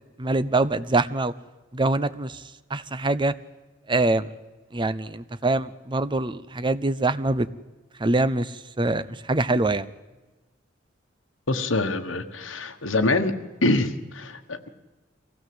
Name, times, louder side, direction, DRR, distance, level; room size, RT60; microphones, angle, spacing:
voice 1, 0.2-1.3 1.7-2.4 2.7-3.3 3.9-4.3 4.7-7.5 8.0-9.9, right 2 dB, 25° right, 14 dB, 0.7 m, -24 dB
voice 2, 11.5-13.3 13.6-14.7, left 2 dB, 85° left, 6 dB, 1.4 m, -25 dB
24.0 x 16.0 x 7.8 m, 1.2 s
head